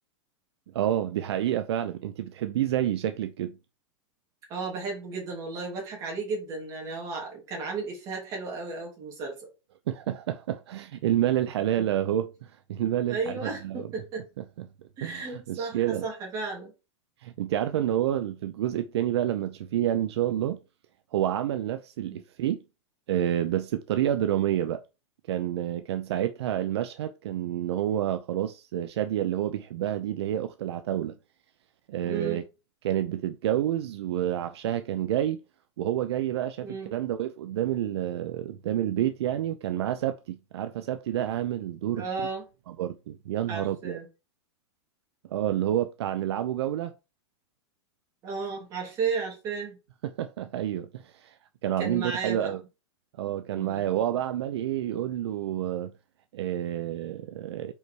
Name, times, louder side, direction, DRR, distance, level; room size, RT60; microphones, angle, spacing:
voice 1, 0.7-3.6 9.9-13.9 14.4-14.7 15.0-16.1 17.2-20.6 21.1-22.6 23.1-24.8 25.3-31.1 31.9-32.4 32.8-35.4 35.8-42.1 42.8-44.0 45.3-46.9 50.0-51.3 51.6-52.6 53.2-55.9 56.3-57.7, right 11 dB, 60° right, 0.6 m, -29 dB
voice 2, 4.5-9.5 13.1-14.3 15.0-16.7 22.1-22.2 32.0-32.4 36.6-37.0 41.9-42.4 43.5-44.1 48.2-49.8 51.8-52.5 53.2-53.9, right 4 dB, 20° right, 2.9 m, -34 dB
5.4 x 4.7 x 4.5 m
supercardioid pair, 180°, 15 cm